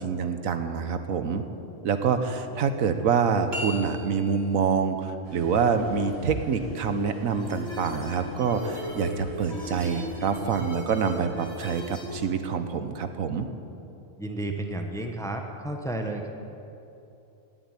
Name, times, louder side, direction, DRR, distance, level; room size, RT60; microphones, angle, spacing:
voice 1, 0.0-1.4 1.8-13.5, right 6 dB, 75° right, 8 dB, 1.3 m, -26 dB
sound 1, 3.5-4.6, equal, 50° right, 2.2 m, -36 dB
sound 2, 5.2-10.3, left 5 dB, 25° right, 3.8 m, -41 dB
sound 3, 7.3-12.3, equal, 50° left, 3.2 m, -38 dB
voice 2, 14.2-16.3, right 1 dB, 5° left, 4 dB, 1.0 m, -32 dB
17.0 x 7.8 x 9.7 m, 2.8 s
omnidirectional pair, 1.4 m